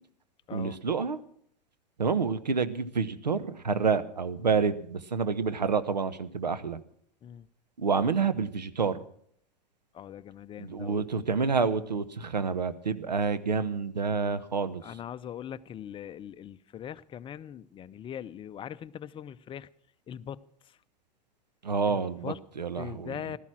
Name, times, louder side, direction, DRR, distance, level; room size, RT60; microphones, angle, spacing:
voice 1, 0.5-1.2 2.0-6.8 7.8-9.0 10.6-14.8 21.6-23.2, right 5 dB, 90° right, 13 dB, 1.0 m, -28 dB
voice 2, 9.9-11.1 14.8-19.7 20.1-20.4 20.6-20.8 21.9-22.4 22.7-23.4, left 9 dB, 25° left, 15 dB, 0.6 m, -41 dB
16.0 x 13.0 x 6.1 m, 0.63 s
figure-of-eight pair, 90°, 21 cm